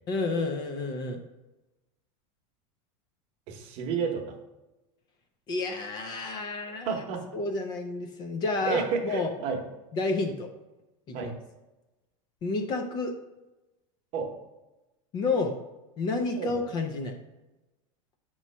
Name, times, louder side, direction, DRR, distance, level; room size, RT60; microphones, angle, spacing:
voice 1, 0.1-1.2 5.5-7.0 7.3-9.3 9.9-10.5 11.1-11.3 12.4-13.1 15.1-15.5 16.0-17.1, left 3 dB, 25° left, 4 dB, 0.5 m, -30 dB
voice 2, 3.5-4.3 6.7-7.2 8.6-9.6 11.1-11.3 14.1-14.3 16.4-16.5, right 6 dB, 40° right, 3 dB, 0.9 m, -31 dB
7.2 x 3.1 x 5.4 m, 1.0 s
supercardioid pair, 165°, 17 cm